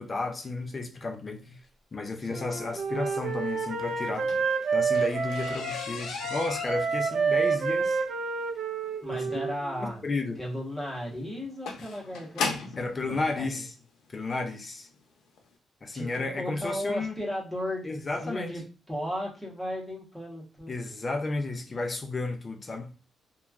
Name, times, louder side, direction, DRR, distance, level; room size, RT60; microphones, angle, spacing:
voice 1, 0.0-1.6 1.9-4.4 4.7-8.0 9.1-9.5 9.8-10.4 12.8-13.7 14.1-14.9 15.8-17.2 17.8-18.5 20.7-22.9, left 3 dB, 25° left, 0.4 m, -33 dB
Wind instrument woodwind instrument, 2.3-5.9 6.2-10.0, right 5 dB, 50° right, 0.4 m, -29 dB
sound 1, 4.0-12.9 13.8-13.9 14.4-14.7 14.9-15.0 15.4-15.5, left 4 dB, 85° left, 0.6 m, -37 dB
voice 2, 9.0-10.0 10.4-13.6 15.9-20.9, equal, 5° left, 0.9 m, -35 dB
3.0 x 2.2 x 2.3 m
cardioid pair, 145°, 0 cm